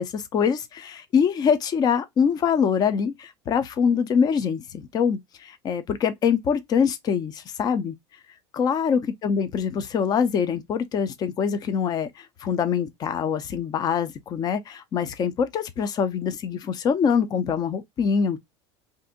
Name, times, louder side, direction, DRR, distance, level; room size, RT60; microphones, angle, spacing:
voice 1, 0.0-7.9 8.5-18.4, left 7 dB, 30° left, 0.6 m, -24 dB
2.6 x 2.5 x 3.7 m
supercardioid pair, 135°, 13 cm